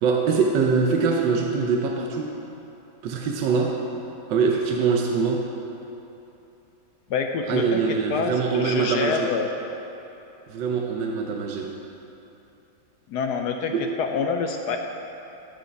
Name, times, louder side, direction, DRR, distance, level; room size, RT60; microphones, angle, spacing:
voice 1, 0.0-2.4 3.0-3.8 4.3-5.5 7.5-9.3 10.5-11.8 13.7-13.9, right 5 dB, 70° right, 1 dB, 1.3 m, -23 dB
voice 2, 7.1-7.8 8.1-9.5 13.1-14.8, left 5 dB, 70° left, 4 dB, 1.0 m, -26 dB
12.5 x 6.4 x 5.8 m, 2.9 s
omnidirectional pair, 2.2 m